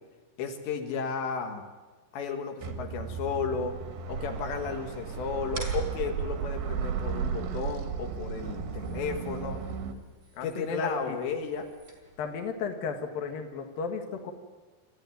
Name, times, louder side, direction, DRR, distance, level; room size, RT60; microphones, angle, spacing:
voice 1, 0.4-1.7 2.1-3.8 4.1-9.7 10.4-11.7, left 5 dB, 80° left, 5 dB, 4.0 m, -33 dB
sound 1, 2.6-9.9, right 7 dB, 80° right, 4.0 m, -34 dB
sound 2, 5.5-12.5, right 3 dB, 30° right, 5.0 m, -49 dB
voice 2, 10.3-11.2 12.2-14.3, left 5 dB, 60° left, 4 dB, 3.1 m, -34 dB
27.5 x 14.0 x 9.3 m, 1.3 s
omnidirectional pair, 5.1 m